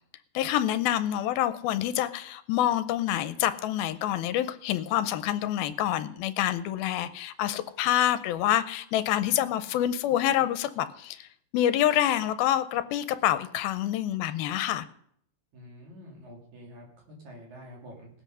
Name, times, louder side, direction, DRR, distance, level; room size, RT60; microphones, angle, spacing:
voice 1, 0.3-11.3 11.5-14.9, left 12 dB, 80° left, 12 dB, 2.5 m, -27 dB
voice 2, 15.5-18.1, equal, 55° right, -1 dB, 4.4 m, -47 dB
19.0 x 7.9 x 6.2 m, 0.66 s
omnidirectional pair, 4.3 m